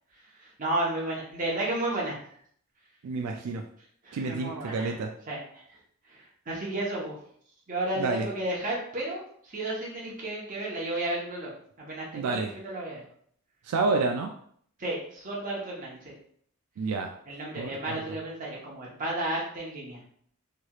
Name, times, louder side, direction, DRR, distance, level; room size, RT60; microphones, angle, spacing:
voice 1, 0.4-2.2 4.0-5.0 5.3-5.6 6.1-7.2 7.7-11.5 11.8-13.0 14.8-16.1 17.3-20.0, right 1 dB, 35° right, -4 dB, 0.9 m, -33 dB
voice 2, 3.0-3.6 4.1-5.1 8.0-8.3 12.1-12.5 13.6-14.3 16.8-17.1 17.6-18.0, right 3 dB, 85° right, 3 dB, 0.3 m, -29 dB
3.1 x 2.9 x 2.3 m, 0.63 s
head